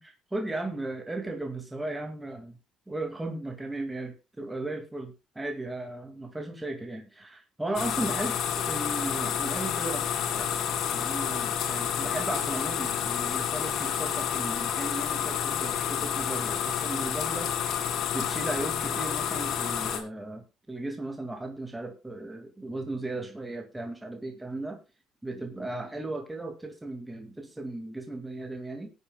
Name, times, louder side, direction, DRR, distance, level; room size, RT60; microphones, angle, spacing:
voice 1, 0.0-2.6 2.9-10.5 10.9-17.5 18.1-24.8 25.2-28.9, right 2 dB, 10° right, 4 dB, 2.3 m, -36 dB
sound 1, 7.7-20.0, left 8 dB, 70° left, 2.2 m, -29 dB
19.5 x 9.4 x 2.3 m, 0.27 s
supercardioid pair, 85°, 0 cm